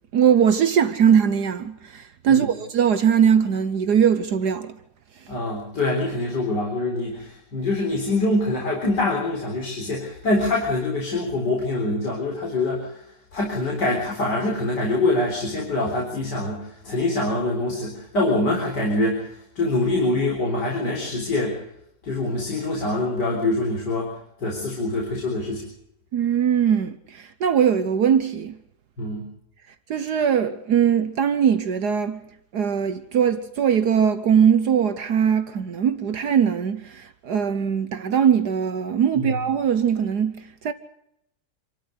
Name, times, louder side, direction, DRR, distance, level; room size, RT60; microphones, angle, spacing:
voice 1, 0.1-4.7 26.1-28.6 29.9-32.2 32.5-40.7, right 8 dB, 65° right, 1.6 m, -21 dB
voice 2, 5.3-13.0 13.3-21.6 22.0-24.1 24.4-25.7 29.0-29.2 39.2-39.3, left 2 dB, 70° left, 4.7 m, -24 dB
27.0 x 13.0 x 8.2 m
omnidirectional pair, 1.9 m